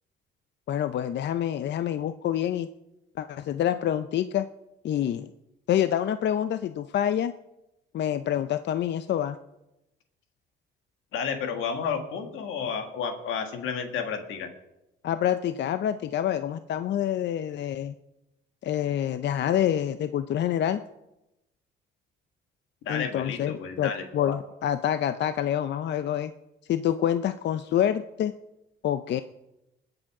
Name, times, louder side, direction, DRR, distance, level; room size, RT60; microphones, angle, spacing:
voice 1, 0.7-2.7 3.2-4.5 4.8-5.3 5.7-7.3 7.9-9.4 15.0-17.9 18.6-20.8 22.9-26.3 26.7-28.3 28.8-29.2, left 10 dB, 60° left, 11 dB, 0.6 m, -27 dB
voice 2, 11.1-14.5 22.8-24.3, left 6 dB, 90° left, 6 dB, 1.7 m, -31 dB
20.5 x 7.9 x 4.8 m, 0.93 s
cardioid pair, 90°, 20 cm